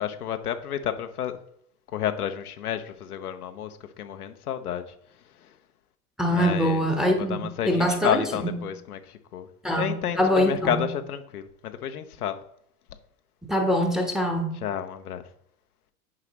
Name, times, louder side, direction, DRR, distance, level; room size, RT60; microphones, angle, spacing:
voice 1, 0.0-1.4 1.9-4.9 5.4-5.5 6.3-6.9 7.2-9.5 9.8-12.4 14.6-15.2, left 9 dB, 80° left, 0.8 m, -30 dB
voice 2, 6.2-8.5 9.6-10.8 13.4-14.6, equal, ahead, 1.1 m, -24 dB
9.6 x 4.9 x 3.0 m
figure-of-eight pair, 90°, 45 cm